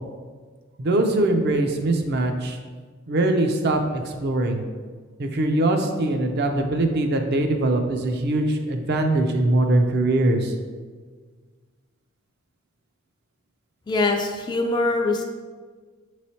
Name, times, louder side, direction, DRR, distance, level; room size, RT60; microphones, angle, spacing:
voice 1, 0.8-2.6 3.1-4.6 5.2-10.5, right 2 dB, 50° right, 4 dB, 0.5 m, -22 dB
voice 2, 13.9-15.2, left 2 dB, 20° left, 3 dB, 0.3 m, -23 dB
6.0 x 3.1 x 2.8 m, 1.5 s
head